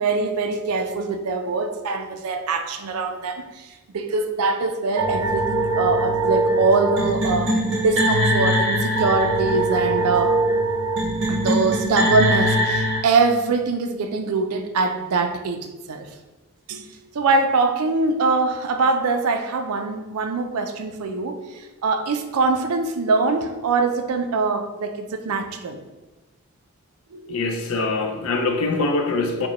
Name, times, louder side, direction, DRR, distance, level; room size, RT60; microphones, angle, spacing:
voice 1, 0.0-7.6 7.8-10.4 11.3-16.1 16.7-25.8 27.1-27.4, right 3 dB, 85° right, 7 dB, 0.4 m, -23 dB
sound 1, 5.0-13.0, right 1 dB, 55° right, 0.9 m, -22 dB
voice 2, 27.3-29.5, left 3 dB, 70° left, 4 dB, 0.4 m, -23 dB
4.8 x 2.2 x 2.9 m, 1.1 s
head